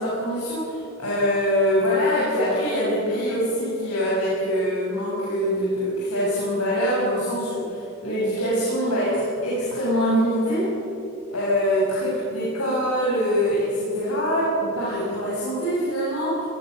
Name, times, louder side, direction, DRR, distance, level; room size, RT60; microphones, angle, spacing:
voice 1, 0.0-10.7 11.3-16.4, equal, 85° left, -7 dB, 7.2 m, -24 dB
23.5 x 20.5 x 6.9 m, 2.8 s
head